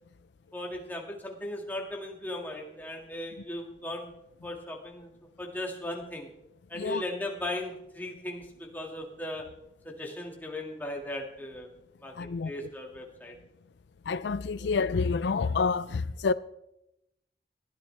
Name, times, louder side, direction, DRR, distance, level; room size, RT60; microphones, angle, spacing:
voice 1, 0.5-4.1 4.4-5.1 5.4-6.3 6.7-9.5 9.8-11.7 12.0-13.4 14.6-14.7, left 1 dB, 10° left, 2.1 m, -37 dB
voice 2, 12.2-12.5 14.1-16.3, left 4 dB, 75° left, 0.4 m, -28 dB
20.5 x 14.0 x 3.4 m
head